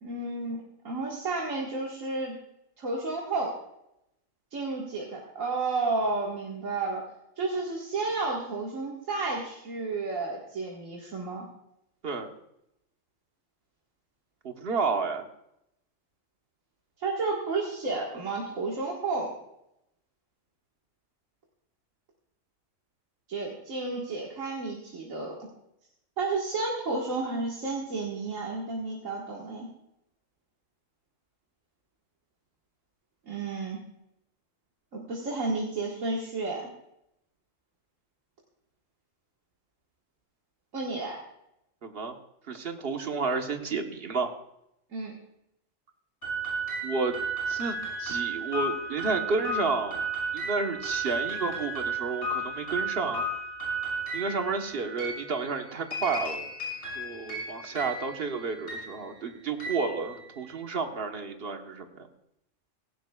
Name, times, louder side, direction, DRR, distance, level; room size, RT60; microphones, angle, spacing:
voice 1, 0.0-2.3 2.8-3.6 4.5-7.0 7.4-11.5 17.0-19.3 23.3-25.4 26.2-29.7 33.3-33.8 34.9-36.7 40.7-41.2 44.9-45.1, right 3 dB, 90° right, -3 dB, 2.2 m, -31 dB
voice 2, 14.4-15.2 41.8-42.1 42.5-44.3 46.8-47.1 47.5-50.0 50.3-53.2 54.1-56.5 56.9-62.1, right 4 dB, 50° right, 4 dB, 1.4 m, -31 dB
sound 1, 46.2-60.7, right 2 dB, 75° left, 6.6 m, -34 dB
17.0 x 16.5 x 2.4 m, 0.81 s
omnidirectional pair, 1.3 m